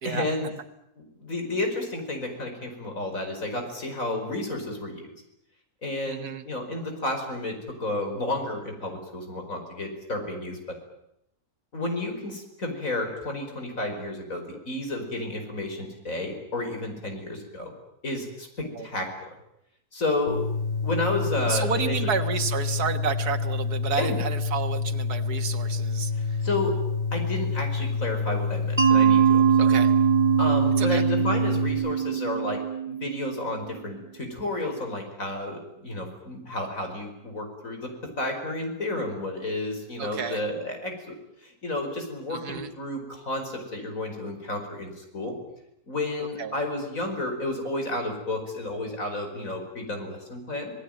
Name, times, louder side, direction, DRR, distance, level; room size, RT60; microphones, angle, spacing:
voice 1, 0.0-0.5 1.0-5.0 5.8-10.8 11.7-17.7 18.0-19.1 19.9-20.5 20.8-22.1 24.0-24.2 26.2-26.7 27.1-29.8 30.4-37.9 38.2-41.2 41.4-45.4 45.9-50.7, left 2 dB, 60° left, 4 dB, 5.5 m, -31 dB
voice 2, 6.1-6.4 18.7-18.9 21.4-26.4 29.6-29.9 30.8-31.0 40.0-40.4 42.3-42.7 46.2-46.5, right 6 dB, 85° right, 8 dB, 2.0 m, -31 dB
sound 1, 20.3-31.7, left 4 dB, 80° left, 5.5 m, -28 dB
Mallet percussion, 28.8-33.5, right 8 dB, 20° right, 1.7 m, -22 dB
26.5 x 19.0 x 9.0 m, 0.81 s
omnidirectional pair, 1.6 m